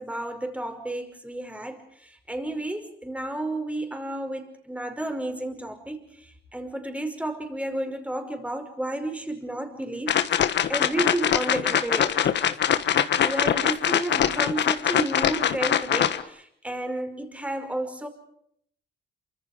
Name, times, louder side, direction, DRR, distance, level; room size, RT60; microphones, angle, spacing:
voice 1, 0.0-1.8 2.3-6.0 6.5-10.2 10.7-12.4 13.2-18.1, right 1 dB, 5° right, 6 dB, 5.3 m, -31 dB
sound 1, 10.1-16.2, left 9 dB, 65° left, 1.4 m, -23 dB
28.0 x 25.5 x 5.1 m, 0.69 s
cardioid pair, 90°, 20 cm